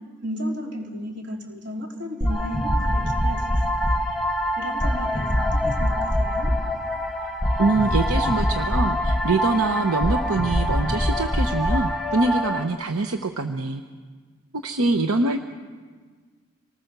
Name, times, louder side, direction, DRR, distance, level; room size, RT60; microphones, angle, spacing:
voice 1, 0.2-3.4 4.6-6.5, equal, 50° right, 0 dB, 3.7 m, -34 dB
sound 1, 2.2-12.6, equal, ahead, 1.7 m, -24 dB
voice 2, 7.6-13.8 14.5-15.4, right 3 dB, 75° right, 6 dB, 0.9 m, -24 dB
26.5 x 19.5 x 6.7 m, 1.5 s
head